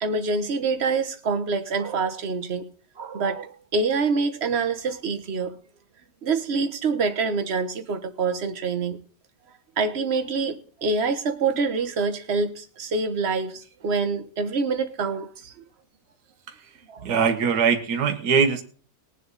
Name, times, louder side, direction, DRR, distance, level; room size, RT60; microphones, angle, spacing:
voice 1, 0.0-2.6 3.0-5.5 6.2-9.0 9.8-15.5 16.9-17.1, right 4 dB, 40° right, 1.4 m, -26 dB
voice 2, 17.0-18.6, right 6 dB, 70° right, 1.8 m, -21 dB
20.5 x 7.6 x 4.1 m
omnidirectional pair, 1.8 m